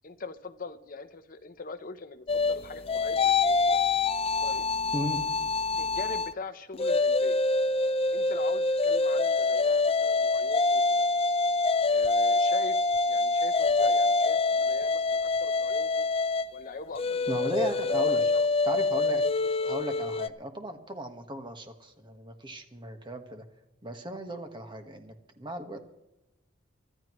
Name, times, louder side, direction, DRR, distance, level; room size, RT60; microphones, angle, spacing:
voice 1, 0.0-3.8 4.4-4.6 5.8-7.4 8.1-11.0 11.9-12.8 13.1-16.1 16.5-18.5 19.4-19.5, left 3 dB, 45° left, 9 dB, 0.9 m, -42 dB
sound 1, 2.3-6.3 6.7-20.3, left 3 dB, 30° left, 0.5 m, -26 dB
voice 2, 17.3-18.2 18.6-19.3 19.6-23.4 23.8-25.9, right 1 dB, 25° right, 6 dB, 1.5 m, -36 dB
25.0 x 13.0 x 3.2 m, 0.89 s
head